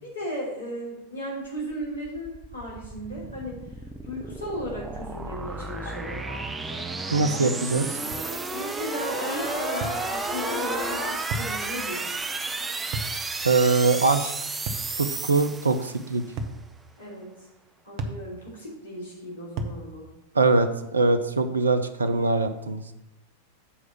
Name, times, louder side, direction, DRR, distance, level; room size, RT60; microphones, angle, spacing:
voice 1, 0.0-3.6 4.0-6.2 8.5-12.2 17.0-17.5 17.8-20.1, equal, 70° left, -4 dB, 3.0 m, -35 dB
sound 1, 1.6-16.2, right 3 dB, 15° right, 0.6 m, -33 dB
sound 2, 5.5-11.1, left 3 dB, 55° left, 2.2 m, -37 dB
voice 2, 7.1-8.0 13.4-14.3 14.9-16.2 20.3-22.8, right 3 dB, 75° right, 10 dB, 0.6 m, -22 dB
sound 3, 8.1-8.3 9.8-10.0 11.3-11.6 12.9-13.2 14.7-14.9 16.4-16.6 18.0-18.2 19.6-19.8, right 2 dB, 45° right, 0.9 m, -32 dB
8.7 x 4.8 x 5.8 m, 0.89 s
figure-of-eight pair, 90°, 0 cm